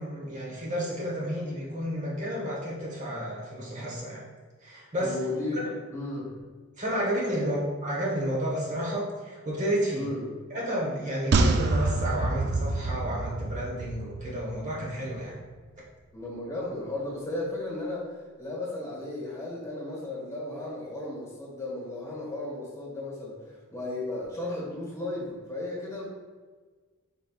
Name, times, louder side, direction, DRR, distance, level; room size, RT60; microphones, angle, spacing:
voice 1, 0.0-4.2 4.6-5.2 5.5-5.6 6.8-10.1 10.5-15.4, equal, 35° right, -5 dB, 1.1 m, -31 dB
voice 2, 5.0-5.6 5.9-6.4 7.3-7.5 9.9-10.3 16.1-26.1, left 2 dB, 15° left, -5 dB, 1.4 m, -35 dB
sound 1, 11.3-14.8 15.0-15.1, right 2 dB, 50° right, 0.4 m, -27 dB
5.4 x 3.9 x 2.4 m, 1.4 s
head